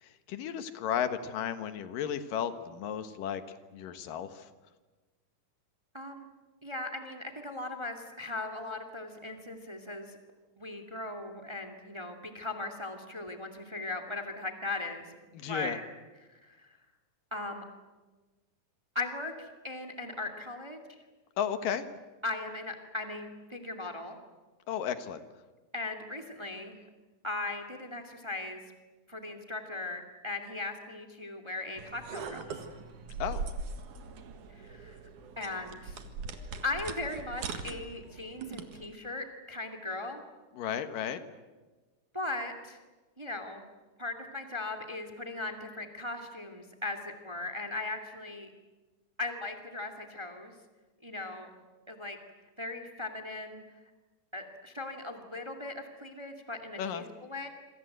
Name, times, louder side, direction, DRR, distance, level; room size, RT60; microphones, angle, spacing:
voice 1, 0.3-3.4 3.7-4.5 15.3-15.8 21.4-21.8 24.7-25.2 33.2-33.4 40.6-41.2 56.8-57.1, left 9 dB, 90° left, 10 dB, 3.1 m, -33 dB
voice 2, 5.9-6.3 6.6-10.2 10.6-15.1 15.5-15.8 16.2-16.7 17.3-17.6 18.9-20.8 22.2-24.2 25.7-26.8 27.2-28.6 29.1-32.4 34.6-35.0 35.4-36.0 36.6-40.2 42.1-42.8 43.2-43.6 44.0-48.5 49.2-50.5 51.0-51.5 51.9-52.2 52.6-53.6 54.3-57.5, left 2 dB, 10° right, 7 dB, 1.8 m, -38 dB
sound 1, 31.8-38.9, right 4 dB, 70° right, 3.2 m, -41 dB
27.0 x 25.5 x 8.0 m, 1.3 s
omnidirectional pair, 3.8 m